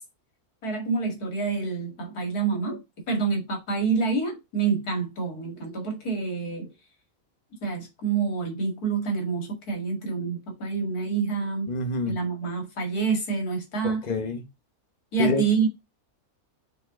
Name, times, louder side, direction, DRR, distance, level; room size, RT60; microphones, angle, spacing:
voice 1, 0.6-2.8 3.1-6.7 7.6-11.7 12.1-14.0 15.1-15.7, right 5 dB, 85° left, 2.5 m, -27 dB
voice 2, 11.7-12.2 13.8-14.5 15.2-15.4, left 3 dB, 30° left, 1.2 m, -27 dB
5.7 x 4.5 x 3.7 m
omnidirectional pair, 1.6 m